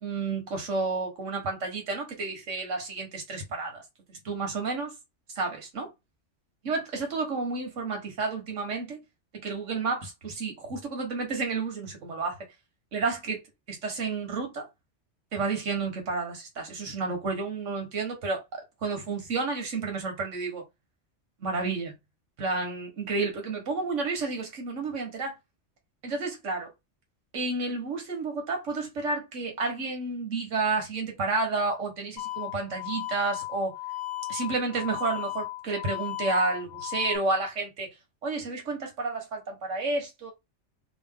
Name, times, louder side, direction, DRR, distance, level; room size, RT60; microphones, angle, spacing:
voice 1, 0.0-3.8 4.1-4.9 5.4-5.9 6.6-9.0 9.3-12.4 12.9-13.4 13.7-14.7 15.3-20.6 21.4-21.9 22.4-25.4 26.0-26.7 27.3-33.8 34.3-37.9 38.2-40.3, right 3 dB, 85° right, 1.6 m, -31 dB
sound 1, 32.2-37.2, left 17 dB, 65° left, 0.9 m, -36 dB
3.1 x 2.6 x 3.6 m
omnidirectional pair, 1.2 m